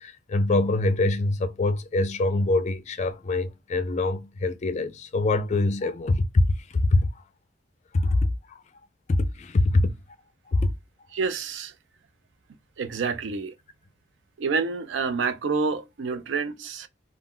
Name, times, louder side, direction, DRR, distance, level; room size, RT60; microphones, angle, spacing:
voice 1, 0.0-6.4 6.7-7.0 7.9-8.6 9.1-9.9 10.5-10.7, left 2 dB, 40° left, 0.4 m, -24 dB
voice 2, 11.1-11.7 12.8-13.5 14.4-16.9, right 4 dB, 65° right, 0.4 m, -28 dB
2.3 x 2.1 x 3.6 m
head